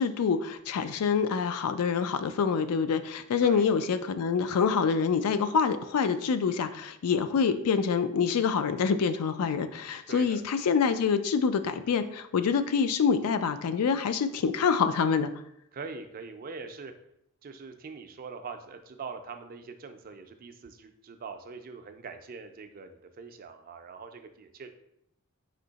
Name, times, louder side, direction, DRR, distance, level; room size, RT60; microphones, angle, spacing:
voice 1, 0.0-15.3, left 6 dB, 85° left, 11 dB, 0.4 m, -26 dB
voice 2, 10.1-10.4 15.7-16.9 17.4-24.7, right 4 dB, 40° right, 7 dB, 0.4 m, -43 dB
4.4 x 2.8 x 3.9 m, 0.78 s
head